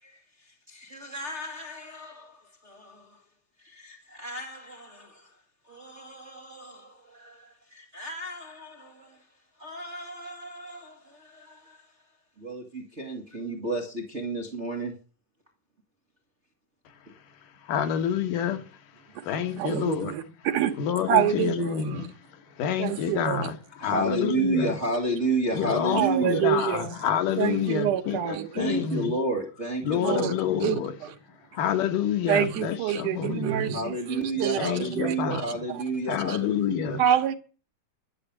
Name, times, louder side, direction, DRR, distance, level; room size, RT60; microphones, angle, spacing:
voice 1, 0.0-3.2 3.6-5.4 5.6-9.3 9.6-11.9 12.4-14.9 17.1-17.2 23.8-26.4 28.5-30.4 33.7-37.0, right 2 dB, 25° right, 2.2 m, -32 dB
voice 2, 16.9-20.2 20.8-24.8 25.5-29.1 29.8-30.9 31.3-33.8 34.5-35.4 36.1-37.0, left 8 dB, 85° left, 3.0 m, -29 dB
voice 3, 19.6-20.7 21.1-22.1 22.8-23.5 25.9-26.9 27.4-28.5 30.0-30.3 30.6-31.1 32.3-35.4 36.3-36.4 37.0-37.3, right 10 dB, 80° right, 2.8 m, -27 dB
12.5 x 7.2 x 8.7 m
omnidirectional pair, 3.7 m